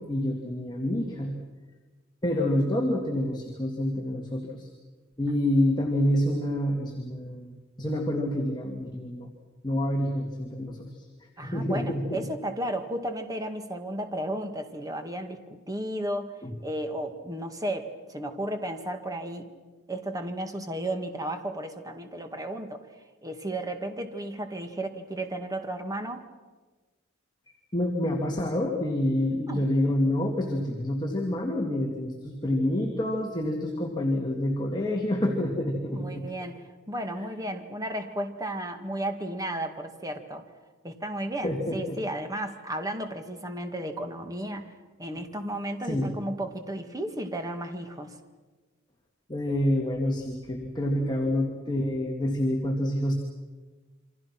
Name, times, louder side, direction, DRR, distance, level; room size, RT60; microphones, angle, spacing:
voice 1, 0.0-1.3 2.2-4.7 5.2-9.3 9.6-10.9 11.4-12.2 16.4-16.5 27.7-36.2 41.4-42.0 45.2-45.3 45.9-46.1 49.3-53.2, left 1 dB, 20° left, 0 dB, 2.5 m, -27 dB
voice 2, 11.4-15.4 15.7-19.5 19.9-22.8 23.2-26.3 29.5-29.7 35.9-40.5 40.8-44.7 45.0-48.2, right 1 dB, 20° right, 6 dB, 2.2 m, -34 dB
28.5 x 25.0 x 6.1 m, 1.3 s
head